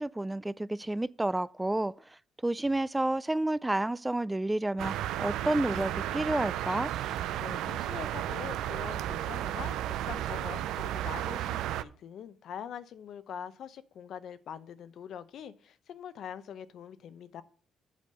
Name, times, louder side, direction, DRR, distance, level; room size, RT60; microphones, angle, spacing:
voice 1, 0.0-1.9 2.4-6.9, right 1 dB, 10° right, 0.3 m, -30 dB
sound 1, 4.8-11.8, right 12 dB, 90° right, 0.4 m, -33 dB
sound 2, 5.7-9.1, left 2 dB, 40° left, 1.2 m, -56 dB
Boom, 6.8-11.7, right 6 dB, 50° right, 0.6 m, -50 dB
voice 2, 7.4-17.4, left 8 dB, 70° left, 0.7 m, -44 dB
8.5 x 5.1 x 6.6 m
cardioid pair, 90°, 0 cm